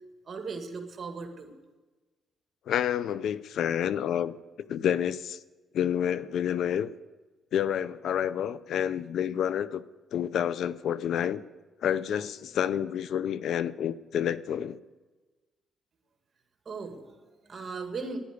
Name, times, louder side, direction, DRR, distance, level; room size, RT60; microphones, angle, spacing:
voice 1, 0.3-1.5 16.7-18.2, right 4 dB, 40° right, 2.2 m, -38 dB
voice 2, 2.7-4.4 4.7-5.4 5.7-6.9 7.5-9.8 10.1-11.4 11.8-14.8, left 9 dB, 70° left, 0.5 m, -29 dB
10.5 x 9.9 x 8.2 m
cardioid pair, 90°, 0 cm